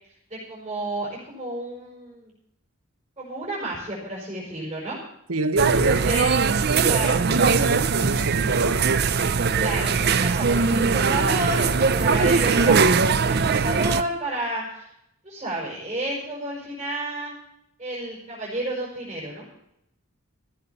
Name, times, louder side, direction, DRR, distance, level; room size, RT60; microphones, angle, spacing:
voice 1, 0.3-2.3 3.2-5.0 6.0-6.3 6.8-7.2 9.5-14.9 15.2-17.3 17.8-19.5, right 1 dB, 25° right, 5.6 m, -31 dB
voice 2, 5.3-6.1 6.7-9.3, right 3 dB, 85° right, 1.2 m, -27 dB
sound 1, 5.6-14.0, right 5 dB, 45° right, 0.6 m, -21 dB
14.5 x 8.8 x 7.0 m
head